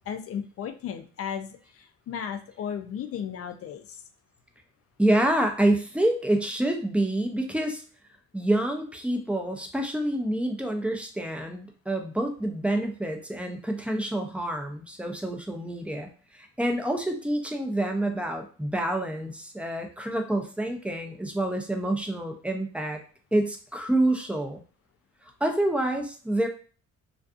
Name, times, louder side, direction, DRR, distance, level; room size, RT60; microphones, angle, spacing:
voice 1, 0.1-4.0, left 8 dB, 50° left, 8 dB, 0.4 m, -35 dB
voice 2, 5.0-7.8 8.3-23.0 23.3-24.6 25.4-26.5, right 1 dB, 5° right, 3 dB, 0.5 m, -27 dB
2.4 x 2.4 x 2.4 m, 0.40 s
cardioid pair, 90°, 30 cm